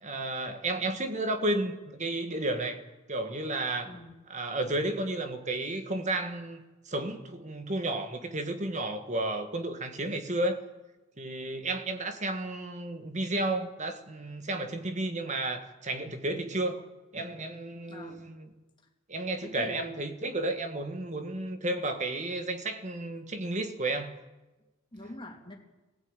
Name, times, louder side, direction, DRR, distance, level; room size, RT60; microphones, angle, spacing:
voice 1, 0.0-2.8 3.1-3.9 4.3-10.6 11.2-16.8 17.1-18.5 19.1-24.2, right 2 dB, 35° right, 1.7 m, -32 dB
voice 2, 17.9-18.3 19.4-20.0 24.9-25.5, left 1 dB, 25° left, 3.0 m, -44 dB
21.0 x 15.5 x 9.0 m
head